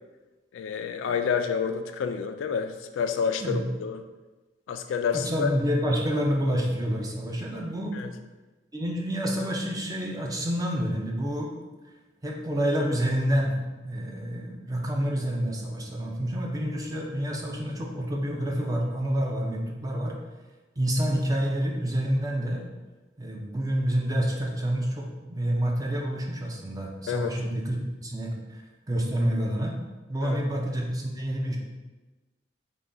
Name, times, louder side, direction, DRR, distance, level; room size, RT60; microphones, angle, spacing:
voice 1, 0.5-4.0 4.7-5.5 7.9-8.1 27.1-27.3 30.2-30.4, left 6 dB, 90° left, 7 dB, 0.3 m, -29 dB
voice 2, 5.1-7.9 8.7-11.6 12.2-13.5 13.8-20.2 20.8-22.7 23.2-28.6 28.9-29.8 30.1-31.6, equal, 20° right, 0 dB, 0.5 m, -28 dB
3.7 x 2.2 x 3.8 m, 1.2 s
head